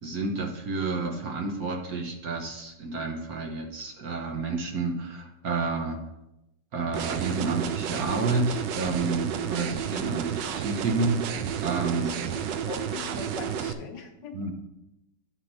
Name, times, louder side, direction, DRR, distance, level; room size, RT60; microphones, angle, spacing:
voice 1, 0.0-6.0 6.7-12.1 14.3-14.5, right 3 dB, 60° right, 1 dB, 1.4 m, -30 dB
sound 1, 6.9-13.7, right 8 dB, 75° right, 1.3 m, -31 dB
voice 2, 12.0-14.5, left 5 dB, 70° left, 4 dB, 1.6 m, -42 dB
10.5 x 3.7 x 5.5 m, 0.91 s
omnidirectional pair, 2.0 m